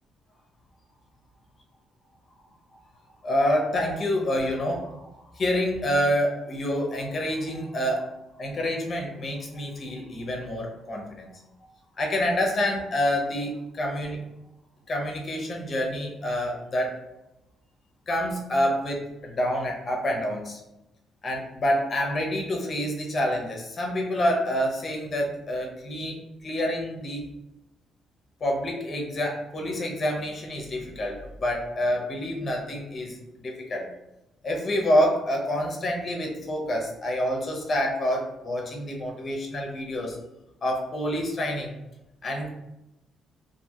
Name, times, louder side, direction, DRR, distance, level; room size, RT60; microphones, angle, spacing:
voice 1, 3.2-8.1 8.4-11.4 12.0-14.2 14.9-17.0 18.1-20.6 21.2-27.2 28.4-33.9 34.4-40.2 40.6-41.7 42.2-42.5, equal, 40° left, 0 dB, 0.6 m, -27 dB
2.5 x 2.3 x 2.8 m, 0.94 s
cardioid pair, 90°, 0 cm